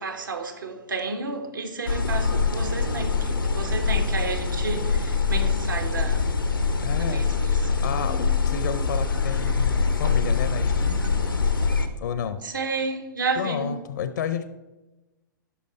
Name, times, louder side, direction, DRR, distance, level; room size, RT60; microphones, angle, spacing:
voice 1, 0.0-6.2 7.0-7.7 12.4-13.8, right 4 dB, 75° right, 1.4 m, -31 dB
sound 1, 1.9-11.9, left 5 dB, 90° left, 0.9 m, -24 dB
voice 2, 6.8-11.0 12.0-12.4 13.4-14.5, left 7 dB, 60° left, 0.7 m, -31 dB
11.5 x 5.3 x 4.3 m
figure-of-eight pair, 110°, 11 cm